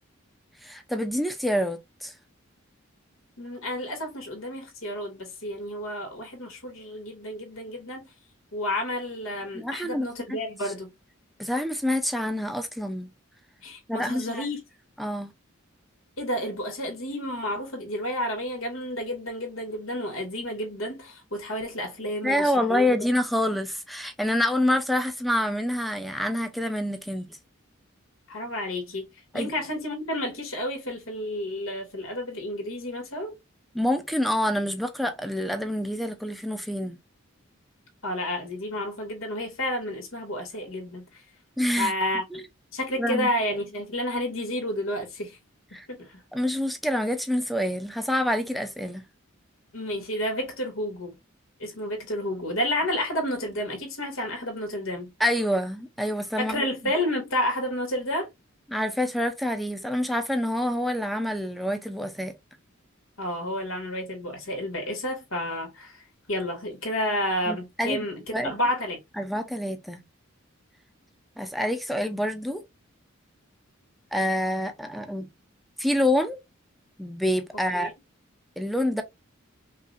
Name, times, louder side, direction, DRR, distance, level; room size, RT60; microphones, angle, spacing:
voice 1, 0.6-2.1 9.5-10.1 11.4-13.1 13.9-14.5 15.0-15.3 22.2-27.4 29.3-29.5 33.7-37.0 41.6-41.9 42.3-42.4 43.0-43.3 45.7-45.9 46.3-49.0 55.2-56.6 58.7-62.3 67.5-68.1 68.3-68.5 69.2-70.0 71.4-72.6 74.1-75.3 75.8-76.4 77.0-77.9 78.6-79.0, left 1 dB, ahead, 0.6 m, -27 dB
voice 2, 3.4-8.1 8.5-10.9 13.6-14.6 16.2-23.0 28.3-29.1 29.3-33.3 38.0-41.2 41.8-42.4 42.7-45.4 46.0-46.2 49.7-51.2 51.6-55.1 56.4-58.3 63.2-68.1 68.4-69.0 77.7-77.9, left 1 dB, 80° left, 2.2 m, -30 dB
5.5 x 2.6 x 2.6 m
head